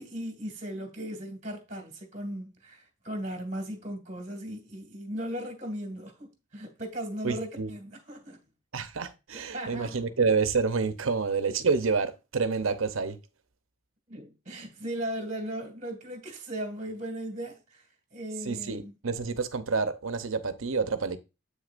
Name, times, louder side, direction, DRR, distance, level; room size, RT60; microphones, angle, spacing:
voice 1, 0.0-8.4 9.3-10.0 14.1-18.9, right 1 dB, 35° right, 2.0 m, -37 dB
voice 2, 7.2-7.7 8.7-13.2 18.4-21.2, right 4 dB, 75° right, 0.8 m, -28 dB
7.9 x 6.5 x 2.5 m
head